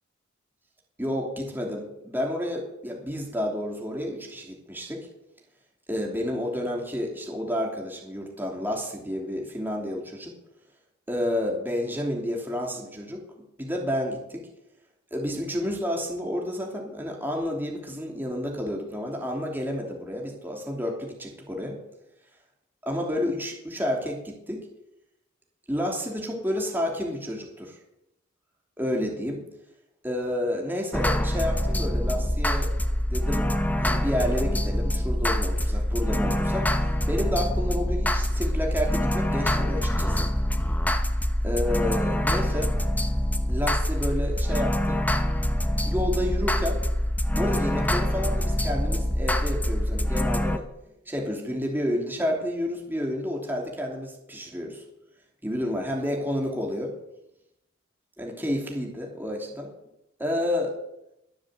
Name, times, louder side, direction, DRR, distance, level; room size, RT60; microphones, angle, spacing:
voice 1, 1.0-5.1 5.9-10.4 11.1-13.2 13.6-14.5 15.1-21.8 22.8-24.6 25.7-27.7 28.8-29.4 30.0-32.7 33.1-33.5 33.8-40.3 41.4-42.7 43.5-45.0 45.8-46.8 47.3-50.6 51.0-54.8 55.4-56.9 58.2-59.7 60.2-60.7, left 1 dB, 10° right, 0 dB, 2.9 m, -30 dB
sound 1, 30.9-50.6, left 1 dB, 10° left, 1.0 m, -25 dB
22.5 x 7.5 x 8.1 m, 0.86 s
head